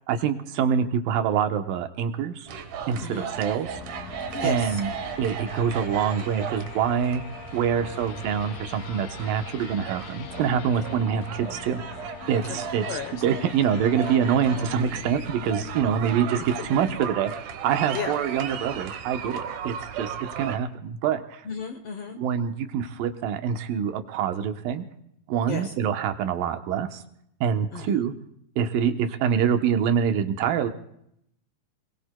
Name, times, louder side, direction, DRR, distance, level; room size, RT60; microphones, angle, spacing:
voice 1, 0.1-2.5 2.9-3.7 4.4-4.9 5.2-7.2 7.5-11.8 12.3-12.9 13.2-17.3 17.6-21.4 22.2-24.8 25.3-27.0 27.4-28.1 28.6-30.7, right 8 dB, 85° right, 7 dB, 2.7 m, -25 dB
sound 1, 2.5-20.6, right 7 dB, 70° right, 2.5 m, -36 dB
voice 2, 3.0-3.3 4.3-4.8 12.4-13.2 16.9-17.0 17.9-18.1 21.5-22.2 25.5-25.7 27.7-28.0, left 5 dB, 60° left, 6 dB, 1.6 m, -34 dB
sound 2, 3.6-17.6, left 9 dB, 80° left, 2.4 m, -42 dB
26.5 x 21.0 x 2.2 m, 0.75 s
omnidirectional pair, 3.9 m